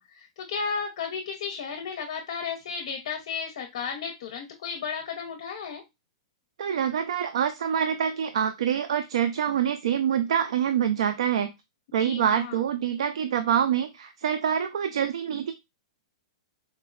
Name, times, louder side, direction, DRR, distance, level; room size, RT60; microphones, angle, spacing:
voice 1, 0.0-5.8 12.0-12.6, left 6 dB, 60° left, 3 dB, 0.7 m, -34 dB
voice 2, 6.6-11.5 11.9-15.5, right 8 dB, 80° right, 9 dB, 0.3 m, -26 dB
4.2 x 2.1 x 2.2 m, 0.21 s
supercardioid pair, 165°, 3 cm